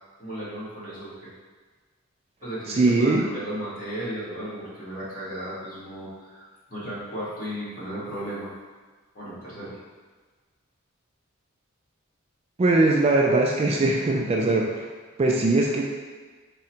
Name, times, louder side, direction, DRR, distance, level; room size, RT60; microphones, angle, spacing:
voice 1, 0.2-1.3 2.4-8.5 9.1-9.8, right 1 dB, 40° left, -10 dB, 1.5 m, -35 dB
voice 2, 2.8-3.3 12.6-14.8 15.2-15.9, right 2 dB, 30° right, -1 dB, 0.3 m, -21 dB
3.7 x 2.1 x 4.3 m, 1.4 s
head